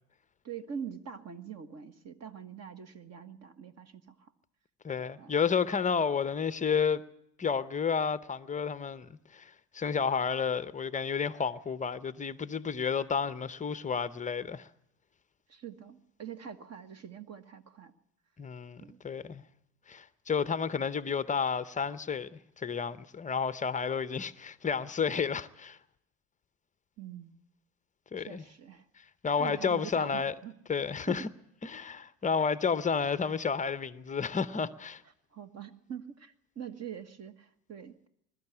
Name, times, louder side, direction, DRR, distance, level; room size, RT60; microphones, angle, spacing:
voice 1, 0.4-4.3 5.2-5.3 15.5-17.9 18.8-19.0 27.0-27.4 28.2-28.8 29.4-30.5 31.1-31.3 35.3-38.1, right 7 dB, 30° right, 1.5 m, -44 dB
voice 2, 4.8-7.0 7.4-14.7 18.4-19.4 19.9-25.8 28.1-28.4 29.0-30.3 30.7-31.3 31.6-35.0, left 6 dB, 15° left, 0.7 m, -31 dB
21.5 x 13.0 x 9.7 m
hypercardioid pair, 85°, 47 cm